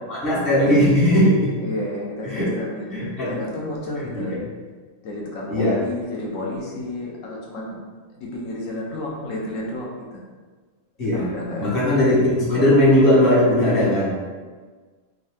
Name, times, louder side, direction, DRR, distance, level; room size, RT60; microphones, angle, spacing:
voice 1, 0.1-1.5 2.2-2.5 2.9-3.3 4.0-4.4 5.5-5.8 11.0-11.3 11.6-14.1, left 1 dB, 40° left, -8 dB, 1.3 m, -18 dB
voice 2, 1.6-4.4 5.0-7.8 8.2-10.2 11.1-11.9, left 1 dB, 60° left, -3 dB, 1.0 m, -31 dB
3.6 x 2.7 x 3.4 m, 1.4 s
omnidirectional pair, 1.6 m